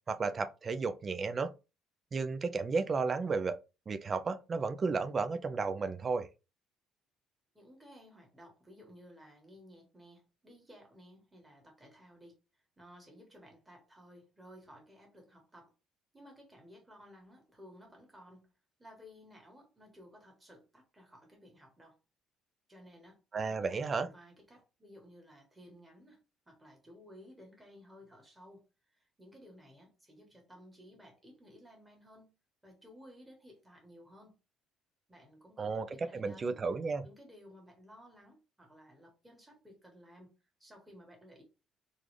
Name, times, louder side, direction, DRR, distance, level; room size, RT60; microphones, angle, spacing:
voice 1, 0.1-1.5 2.1-3.6 3.9-6.3 23.3-24.1 35.6-37.1, right 4 dB, 25° right, 0.3 m, -33 dB
voice 2, 7.5-15.7 16.1-18.5 18.8-22.0 22.7-28.7 28.9-32.3 32.6-34.4 35.1-36.6 37.0-41.4, equal, 10° right, 1.3 m, -56 dB
3.8 x 2.4 x 3.1 m
cardioid pair, 150°, 0 cm